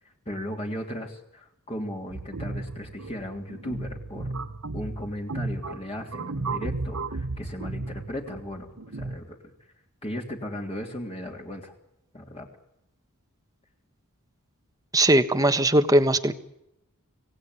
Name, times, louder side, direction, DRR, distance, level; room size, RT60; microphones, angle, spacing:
voice 1, 0.2-4.3 4.7-9.5 10.0-11.7 12.1-12.5, equal, 25° left, 1 dB, 3.3 m, -36 dB
sound 1, 2.1-9.2, right 3 dB, 65° right, 1.2 m, -34 dB
voice 2, 14.9-16.3, right 1 dB, 15° right, 10 dB, 1.4 m, -20 dB
26.0 x 18.5 x 9.8 m, 0.85 s
head